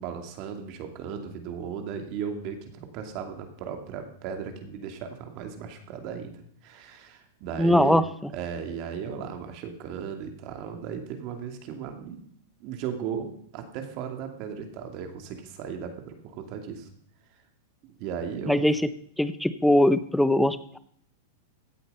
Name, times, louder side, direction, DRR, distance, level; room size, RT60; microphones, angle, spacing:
voice 1, 0.0-6.3 6.6-12.2 12.6-16.9 17.8-18.7, right 7 dB, 45° right, 6 dB, 2.4 m, -36 dB
voice 2, 7.6-8.0 18.5-18.8 19.2-20.8, left 1 dB, ahead, 14 dB, 0.7 m, -21 dB
16.0 x 8.3 x 5.5 m, 0.65 s
hypercardioid pair, 135°, 0 cm